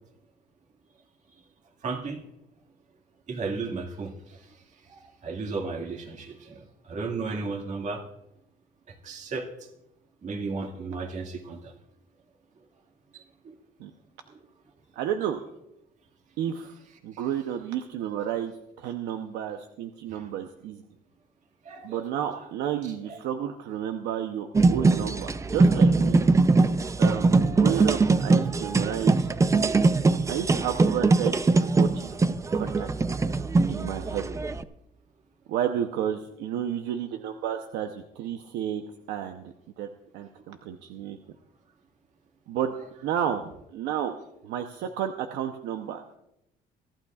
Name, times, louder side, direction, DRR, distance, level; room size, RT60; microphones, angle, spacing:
voice 1, 1.8-2.2 3.3-4.1 4.9-6.6 6.9-8.0 9.0-9.5 10.2-11.7 13.4-13.5 20.1-20.3 21.7-22.1 23.1-23.2 32.6-32.7, right 4 dB, 45° right, 3 dB, 2.0 m, -34 dB
voice 2, 15.0-15.4 16.4-16.8 17.0-20.8 21.8-26.2 27.0-29.6 30.3-32.2 32.5-32.9 33.7-34.3 35.5-38.8 39.1-39.9 40.1-41.2 42.5-42.7 43.0-44.1 44.4-46.0, right 9 dB, 85° right, 6 dB, 0.8 m, -31 dB
sound 1, 24.5-34.6, right 3 dB, 20° right, 0.5 m, -22 dB
23.0 x 12.0 x 2.4 m, 0.84 s
cardioid pair, 110°, 17 cm